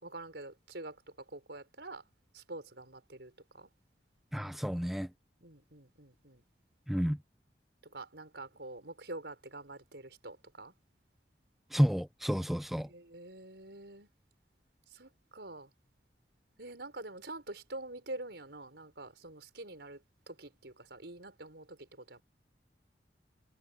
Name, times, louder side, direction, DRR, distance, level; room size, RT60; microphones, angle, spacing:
voice 1, 0.0-1.0 1.3-2.0 2.3-3.7 5.4-6.4 7.9-10.7 12.9-14.1 14.9-15.7 16.6-20.0 20.3-22.2, right 2 dB, 75° right, 5.2 m, -46 dB
voice 2, 4.3-5.1 6.9-7.2 11.7-12.9, equal, ahead, 0.4 m, -30 dB
head